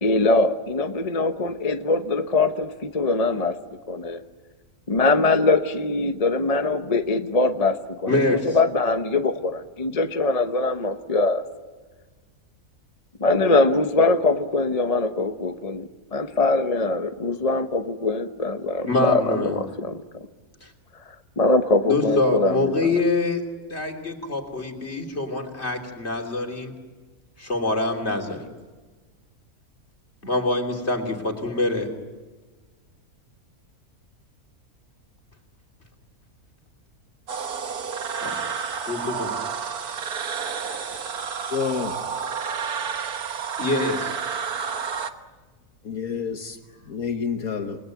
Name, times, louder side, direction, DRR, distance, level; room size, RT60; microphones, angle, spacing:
voice 1, 0.0-3.6 3.9-4.2 4.9-11.4 13.2-20.0 21.4-22.9, left 3 dB, 30° left, 1.0 m, -22 dB
voice 2, 8.1-8.4 18.8-19.6 20.6-20.7 21.8-23.4 23.7-26.7 27.4-28.5 30.2-31.9 38.2-38.4 38.9-39.3 43.6-44.1, left 2 dB, 45° left, 3.4 m, -25 dB
sound 1, 37.3-45.1, right 6 dB, 85° right, 1.8 m, -30 dB
voice 3, 41.5-41.9 45.8-46.6 46.9-47.8, left 6 dB, 75° left, 1.7 m, -28 dB
29.5 x 20.5 x 9.3 m
omnidirectional pair, 1.6 m